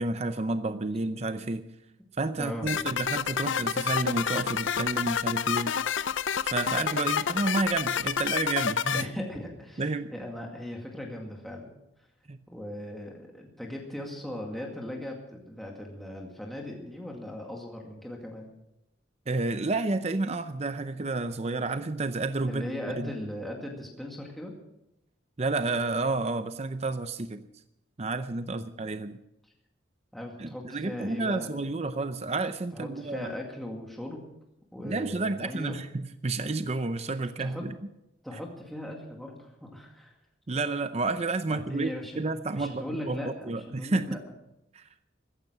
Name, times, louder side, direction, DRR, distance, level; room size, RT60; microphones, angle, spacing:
voice 1, 0.0-1.6 2.2-5.7 6.4-9.1 9.8-10.1 12.3-12.4 19.3-22.7 23.0-23.1 25.4-27.4 28.0-29.2 30.4-33.3 34.8-37.8 40.5-44.2 44.7-44.8, right 3 dB, 35° right, 10 dB, 0.6 m, -30 dB
sound 1, 2.7-9.0, left 7 dB, 75° left, 0.6 m, -28 dB
voice 2, 8.9-11.7 12.0-12.1 12.5-18.5 22.5-24.5 28.5-28.9 30.1-31.5 31.9-32.0 32.7-34.3 34.7-35.8 37.4-37.7 38.2-40.1 41.5-42.2 42.5-44.2, left 1 dB, ahead, -1 dB, 2.1 m, -39 dB
15.0 x 14.5 x 6.1 m, 0.85 s
head